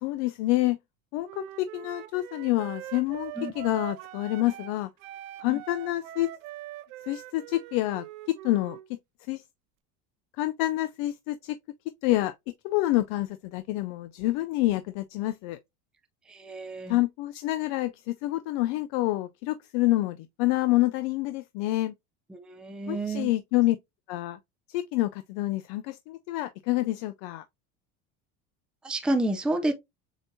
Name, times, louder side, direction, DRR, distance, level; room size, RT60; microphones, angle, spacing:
voice 1, 0.0-0.8 1.1-4.9 5.4-6.3 7.1-9.0 9.3-9.4 10.4-11.6 12.0-12.3 12.6-15.6 16.9-21.9 22.9-23.8 24.1-24.4 24.7-27.4, left 17 dB, 65° left, 0.5 m, -27 dB
Wind instrument woodwind instrument, 1.2-4.8 5.0-8.9, right 14 dB, 80° right, 0.6 m, -42 dB
voice 2, 16.3-17.0 22.3-23.3 28.8-29.7, right 2 dB, ahead, 0.5 m, -29 dB
7.1 x 2.7 x 2.6 m
supercardioid pair, 115°, 39 cm